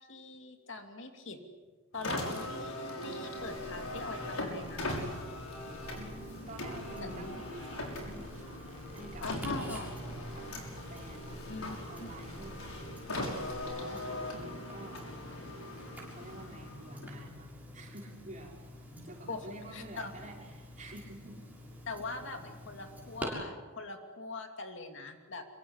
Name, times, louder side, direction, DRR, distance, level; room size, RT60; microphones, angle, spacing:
voice 1, 0.0-1.4 1.9-5.0 7.0-7.3 9.2-9.9 11.5-12.1 19.0-19.5 19.7-20.1 21.9-25.4, left 3 dB, 60° left, 5 dB, 2.7 m, -42 dB
Car, 1.9-17.3, left 1 dB, 85° left, 6.0 m, -40 dB
sound 1, 3.4-4.0 4.3-5.1 5.4-6.2 6.5-7.3 7.5-8.3 8.6-9.5 9.7-10.5 10.8-11.7 11.9-12.8 13.0-13.6, equal, 30° left, 7.7 m, -51 dB
Tick-tock, 3.4-23.2, equal, 10° right, 6.8 m, -49 dB
voice 2, 6.0-8.7 8.9-9.2 10.3-11.6 11.9-13.2 13.6-15.2 16.1-18.6 19.0-21.4, right 1 dB, 35° right, -1 dB, 5.6 m, -49 dB
26.5 x 24.0 x 8.2 m, 1.3 s
head